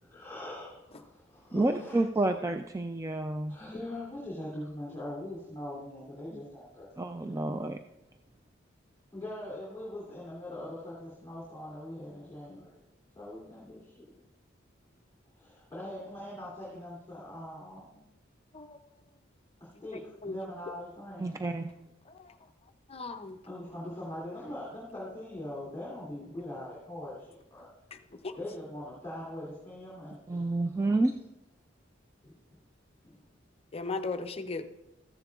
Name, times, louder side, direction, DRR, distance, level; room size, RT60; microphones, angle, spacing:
voice 1, 0.0-2.0 3.5-7.6 9.1-12.8 13.1-13.9 15.3-18.0 19.6-21.4 23.5-27.7 28.4-30.4 32.2-32.3 33.0-33.2, left 1 dB, 15° left, -7 dB, 3.0 m, -42 dB
voice 2, 1.5-3.5 7.0-7.8 21.2-21.7 30.3-31.1, right 2 dB, 15° right, 6 dB, 0.3 m, -29 dB
voice 3, 22.9-23.4 28.2-28.3 33.7-34.6, left 3 dB, 30° left, 8 dB, 0.6 m, -36 dB
14.0 x 10.5 x 2.4 m, 0.89 s
head